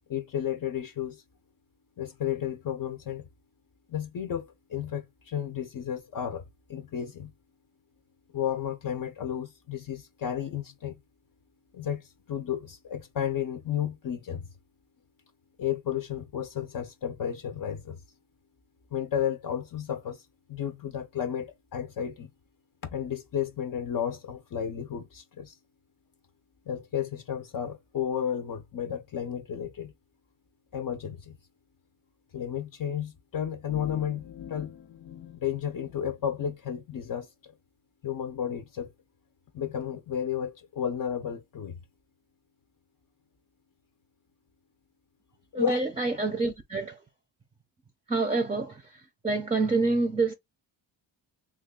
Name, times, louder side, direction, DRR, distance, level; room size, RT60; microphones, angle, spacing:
voice 1, 0.1-1.2 2.0-3.3 3.9-6.4 6.7-7.3 8.3-11.0 11.7-14.5 15.6-18.0 18.9-22.3 22.8-25.6 26.7-29.9 30.7-31.4 32.3-34.7 35.3-37.5 38.0-38.9 39.5-41.8 45.5-45.8, left 9 dB, 50° left, 0.7 m, -32 dB
sound 1, 33.7-36.5, left 9 dB, 75° left, 1.0 m, -44 dB
voice 2, 45.5-47.1 48.1-50.3, right 3 dB, 15° right, 0.6 m, -27 dB
3.2 x 2.4 x 3.7 m
cardioid pair, 105°, 45 cm